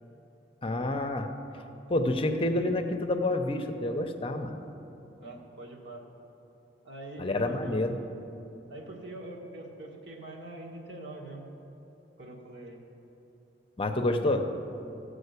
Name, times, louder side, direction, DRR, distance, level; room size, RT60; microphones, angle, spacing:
voice 1, 0.6-1.3 1.9-4.6 7.2-8.0 13.8-14.5, left 2 dB, 30° left, 6 dB, 0.6 m, -28 dB
voice 2, 5.2-6.1 6.8-7.9 8.7-11.4 12.2-12.8 14.2-14.4, right 2 dB, 80° right, -1 dB, 1.7 m, -43 dB
14.5 x 5.0 x 8.1 m, 2.9 s
head